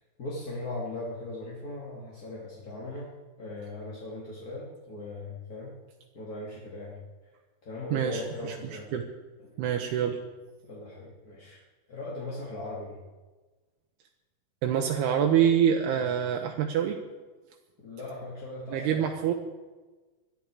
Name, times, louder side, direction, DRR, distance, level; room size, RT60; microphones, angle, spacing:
voice 1, 0.2-3.1 3.4-5.8 6.1-7.0 7.6-8.9 9.4-9.5 10.6-11.6 11.9-13.0 15.9-16.1 17.8-19.0, left 2 dB, 25° left, -6 dB, 2.3 m, -39 dB
voice 2, 7.9-8.6 8.9-9.1 9.6-10.2 14.6-17.0 18.7-19.3, right 9 dB, 80° right, 2 dB, 3.0 m, -26 dB
21.5 x 13.0 x 4.8 m, 1.3 s
omnidirectional pair, 4.6 m